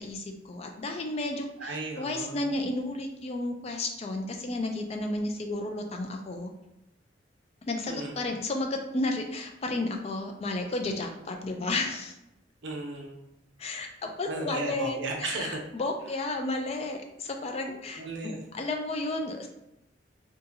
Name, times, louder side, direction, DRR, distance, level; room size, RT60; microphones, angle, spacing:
voice 1, 0.0-6.5 7.7-12.1 13.6-18.0 18.5-19.5, left 2 dB, 30° left, 4 dB, 0.3 m, -32 dB
voice 2, 1.6-2.4 7.9-8.3 12.6-13.3 14.3-15.6 17.9-18.5, right 2 dB, 65° right, 1 dB, 0.6 m, -35 dB
2.7 x 2.5 x 3.8 m, 0.87 s
head